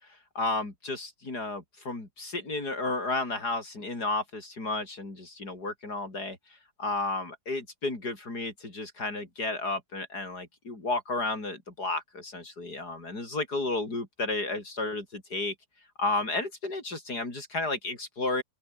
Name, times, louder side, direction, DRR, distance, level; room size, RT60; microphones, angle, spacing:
voice 1, 0.4-6.4 6.8-15.5 16.0-18.4, left 2 dB, 75° left, 5.8 m, -32 dB
open air
omnidirectional pair, 1.7 m